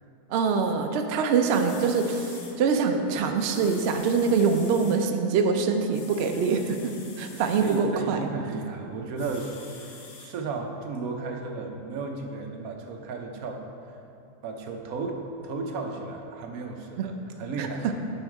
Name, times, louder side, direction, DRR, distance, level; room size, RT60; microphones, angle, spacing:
voice 1, 0.3-8.2 17.0-17.1 17.6-17.7, right 5 dB, 85° right, 5 dB, 0.5 m, -24 dB
sound 1, 1.2-1.3 1.5-2.5 3.4-5.0 5.9-7.8 9.2-10.3 10.9-11.0, left 4 dB, 80° left, 1.5 m, -46 dB
voice 2, 7.6-13.6 13.9-14.0 14.4-17.9, right 4 dB, 65° right, 3 dB, 1.1 m, -34 dB
7.0 x 5.4 x 4.6 m, 2.7 s
omnidirectional pair, 1.7 m